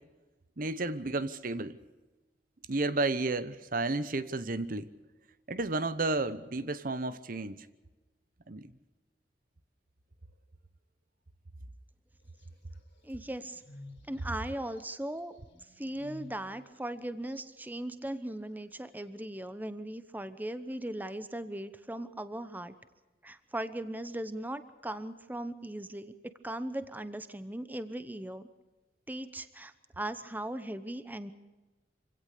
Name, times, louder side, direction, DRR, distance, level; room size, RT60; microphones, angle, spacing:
voice 1, 0.6-1.8 2.7-4.9 5.5-7.7 8.5-8.7, right 2 dB, 50° right, 14 dB, 1.0 m, -32 dB
sound 1, 12.4-14.3 14.7-14.8 15.1-15.2 15.5-16.6 16.8-18.2, left 2 dB, 85° left, 5.0 m, -52 dB
voice 2, 13.0-13.6 14.1-15.4 15.8-22.7 23.2-28.5 29.1-31.3, right 1 dB, 10° right, 12 dB, 0.9 m, -38 dB
26.0 x 17.0 x 6.7 m, 1.2 s
head